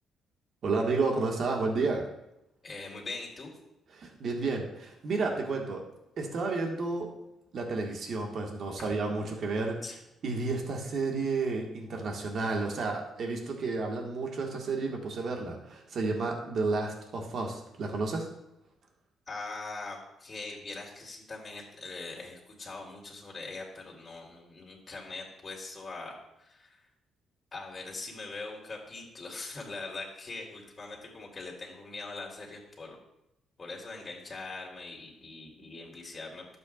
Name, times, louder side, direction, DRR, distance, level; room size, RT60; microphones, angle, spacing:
voice 1, 0.6-2.0 4.0-5.8 6.2-7.1 7.5-9.8 10.2-18.3, right 3 dB, 60° right, 1 dB, 1.7 m, -31 dB
voice 2, 2.6-3.5 9.8-10.0 19.3-26.8 27.5-33.0 33.6-36.5, left 3 dB, 30° left, -2 dB, 3.0 m, -42 dB
12.0 x 7.8 x 2.5 m, 0.86 s
cardioid pair, 90°, 0 cm